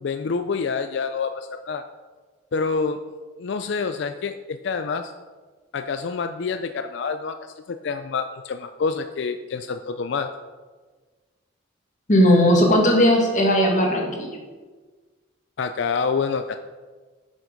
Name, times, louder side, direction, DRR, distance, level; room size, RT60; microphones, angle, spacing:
voice 1, 0.0-1.8 2.5-3.0 3.4-5.1 5.7-10.3 15.6-16.6, left 5 dB, 60° left, 8 dB, 0.4 m, -27 dB
voice 2, 12.1-14.4, equal, 35° left, 0 dB, 1.6 m, -17 dB
9.4 x 6.3 x 5.2 m, 1.4 s
head